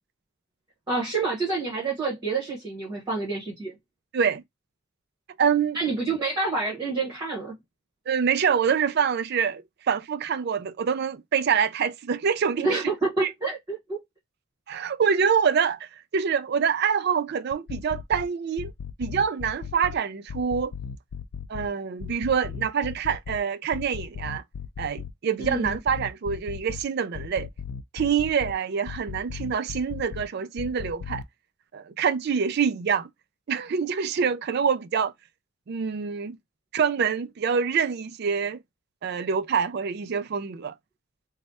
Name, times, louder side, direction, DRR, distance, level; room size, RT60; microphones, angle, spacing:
voice 1, 0.9-3.8 5.7-7.6 12.6-14.0 25.4-25.8, right 3 dB, 20° right, 1.3 m, -28 dB
voice 2, 5.4-5.8 8.1-12.8 13.2-13.3 14.7-18.7 19.0-20.7 21.5-24.4 24.8-27.5 27.9-31.2 31.7-33.1 33.5-35.1 35.7-36.4 36.7-38.6 39.0-40.7, right 6 dB, 45° right, 0.3 m, -26 dB
sound 1, 17.5-18.2 18.6-20.0 20.3-21.7 22.0-23.4 23.7-25.1 25.4-26.8 27.1-28.5 28.9-30.2 30.6-31.2, left 7 dB, 90° left, 0.4 m, -36 dB
3.2 x 2.2 x 4.1 m
head